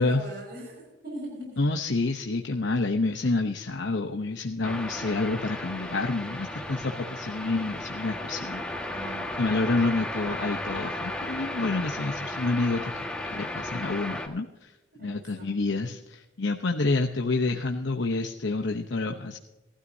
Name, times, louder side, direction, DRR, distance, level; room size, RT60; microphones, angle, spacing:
voice 1, 0.0-1.6 8.9-9.4 14.9-15.9, right 1 dB, 55° right, 0 dB, 5.2 m, -41 dB
voice 2, 1.6-8.6 9.4-13.0 13.3-14.7 15.0-19.4, left 3 dB, 80° left, 3 dB, 0.9 m, -28 dB
sound 1, 4.6-14.3, left 1 dB, 5° left, 1.5 m, -34 dB
18.0 x 13.0 x 2.7 m, 1.0 s
head